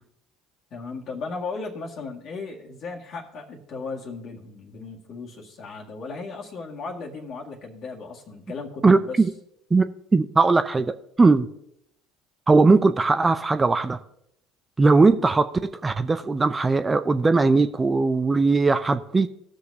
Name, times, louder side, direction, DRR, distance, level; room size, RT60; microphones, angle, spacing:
voice 1, 0.7-9.2, left 4 dB, 50° left, 0 dB, 1.9 m, -36 dB
voice 2, 8.8-9.3 9.7-11.5 12.5-14.0 14.8-19.3, right 3 dB, 20° right, 10 dB, 0.5 m, -19 dB
19.0 x 6.4 x 2.8 m, 0.77 s
hypercardioid pair, 65°, 0 cm